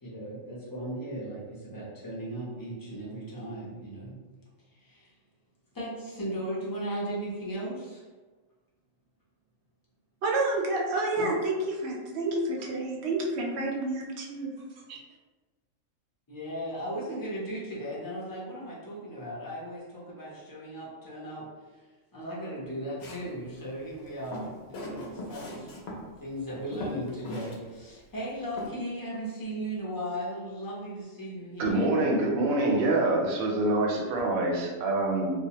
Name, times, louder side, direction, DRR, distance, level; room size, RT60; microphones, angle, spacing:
voice 1, 0.0-4.2 4.7-5.1 5.7-8.0 11.2-11.3 16.3-21.5 21.7-21.8 22.1-25.9 26.2-32.0, right 1 dB, 30° left, -7 dB, 0.4 m, -37 dB
voice 2, 10.2-14.5 14.9-15.0, right 2 dB, 65° right, -1 dB, 0.7 m, -29 dB
Walk footsteps, 23.0-23.3 24.1-26.0 26.4-26.5 26.7-27.6 27.9-28.0 28.6-28.7, left 1 dB, 65° left, 0.7 m, -38 dB
voice 3, 31.6-35.3, right 2 dB, 90° right, 0 dB, 1.0 m, -25 dB
2.3 x 2.1 x 2.8 m, 1.3 s
omnidirectional pair, 1.4 m